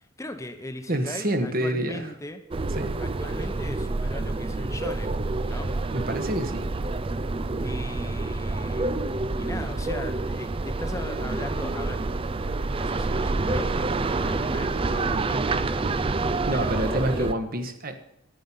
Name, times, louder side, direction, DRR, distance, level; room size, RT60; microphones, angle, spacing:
voice 1, 0.0-2.4 3.0-5.2 5.4-5.7 7.6-8.9 9.4-12.0 12.7-17.3, left 1 dB, 15° left, 7 dB, 0.9 m, -39 dB
voice 2, 0.9-2.1 2.8-2.9 5.9-6.7 16.5-18.0, right 1 dB, 45° right, 8 dB, 1.3 m, -27 dB
sound 1, 2.5-17.3, right 3 dB, 25° right, 0.4 m, -28 dB
10.5 x 10.5 x 5.5 m, 0.82 s
head